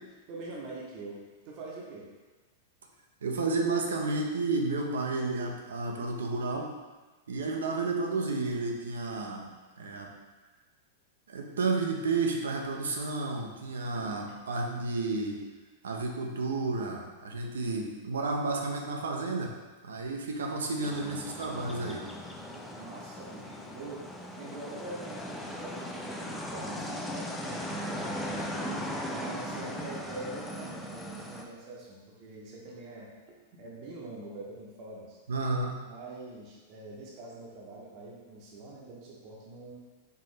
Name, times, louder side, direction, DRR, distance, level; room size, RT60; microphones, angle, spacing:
voice 1, 0.3-2.1 13.7-14.3 22.5-28.5 29.1-35.2 35.9-39.7, right 2 dB, 45° right, -3 dB, 0.9 m, -44 dB
voice 2, 3.2-6.7 7.3-9.5 9.8-10.1 11.3-15.4 15.8-19.5 19.8-22.1 35.3-35.8, right 3 dB, 75° right, 1 dB, 0.6 m, -31 dB
sound 1, 20.8-31.4, equal, 10° left, 0.5 m, -38 dB
4.5 x 2.9 x 3.3 m, 1.3 s
figure-of-eight pair, 100°, 0 cm